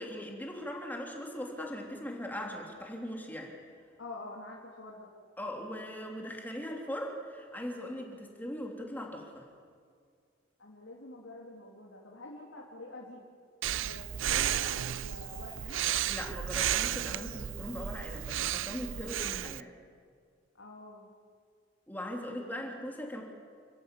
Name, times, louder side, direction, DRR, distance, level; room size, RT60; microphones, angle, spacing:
voice 1, 0.0-3.5 5.4-9.4 16.1-19.7 21.9-23.2, equal, 10° left, 0 dB, 3.1 m, -40 dB
voice 2, 4.0-5.1 10.6-13.2 13.8-15.9 16.6-16.7 20.5-21.1 22.4-22.6, left 2 dB, 90° left, -3 dB, 3.2 m, -47 dB
Breathing, 13.6-19.6, right 11 dB, 80° right, 0.5 m, -33 dB
29.0 x 14.0 x 8.5 m, 2.1 s
head